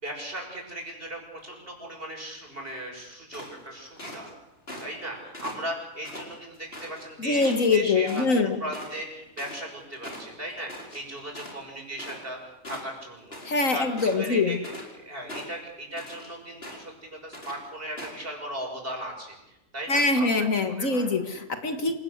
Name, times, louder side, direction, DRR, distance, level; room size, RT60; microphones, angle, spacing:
voice 1, 0.0-4.3 4.8-12.4 12.7-13.4 13.7-13.9 14.2-14.6 15.0-16.9 17.2-21.1, right 1 dB, 35° right, 1 dB, 6.8 m, -37 dB
sound 1, 3.3-4.3 4.7-5.0 5.3-7.0 7.4-7.8 8.0-8.3 8.5-12.4 12.6-13.6 13.9-14.9 15.3-16.3 16.6-17.0 17.3-17.6 18.0-18.2, left 1 dB, 40° left, 5.0 m, -41 dB
voice 2, 7.2-8.6 13.5-14.6 19.9-21.9, left 3 dB, 60° left, 7 dB, 2.1 m, -24 dB
27.0 x 18.0 x 8.1 m, 0.90 s
omnidirectional pair, 1.6 m